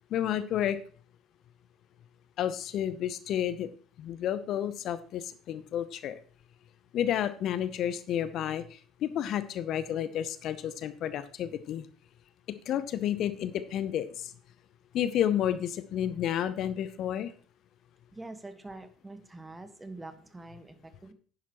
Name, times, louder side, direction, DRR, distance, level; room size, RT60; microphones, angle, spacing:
voice 1, 0.1-0.8 2.4-3.7 4.0-6.1 6.9-11.9 12.7-14.3 14.9-17.3, left 10 dB, 55° left, 14 dB, 0.7 m, -31 dB
voice 2, 18.1-21.1, right 2 dB, 15° right, 9 dB, 1.5 m, -45 dB
10.5 x 10.0 x 3.0 m, 0.42 s
hypercardioid pair, 60°, 0 cm